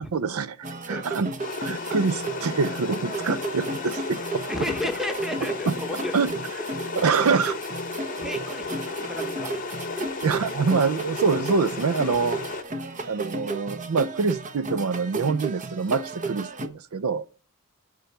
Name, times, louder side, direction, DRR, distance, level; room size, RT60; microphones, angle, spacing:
voice 1, 0.1-1.3 1.6-4.5 5.7-5.8 6.1-6.3 7.0-7.6 10.2-12.4 13.0-17.3, right 5 dB, 70° right, 0.5 m, -25 dB
sound 1, 0.6-16.7, right 2 dB, 35° right, 0.9 m, -34 dB
sound 2, 1.4-12.6, left 4 dB, 40° left, 0.8 m, -34 dB
voice 2, 4.5-6.2 6.7-7.1 8.2-9.5 10.0-10.1 12.0-12.2, left 1 dB, ahead, 1.2 m, -33 dB
10.0 x 6.4 x 6.7 m
head